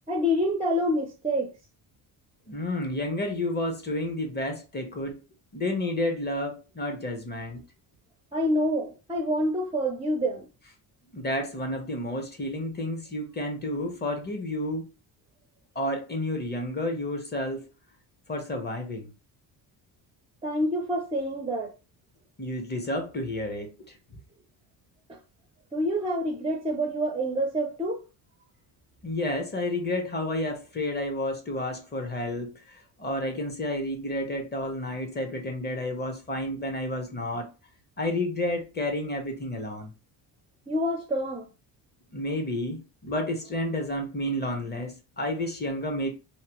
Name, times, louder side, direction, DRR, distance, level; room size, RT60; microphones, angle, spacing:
voice 1, 0.1-1.5 8.3-10.5 20.4-21.7 25.1-25.2 25.7-28.0 40.7-41.5, equal, 15° right, 0.4 m, -27 dB
voice 2, 2.5-5.2 5.5-7.6 11.1-14.9 15.7-17.7 18.3-19.1 22.4-23.7 29.0-37.5 38.0-39.9 42.1-46.1, left 1 dB, 20° left, 0.8 m, -31 dB
2.8 x 2.1 x 2.9 m
cardioid pair, 95°, 45 cm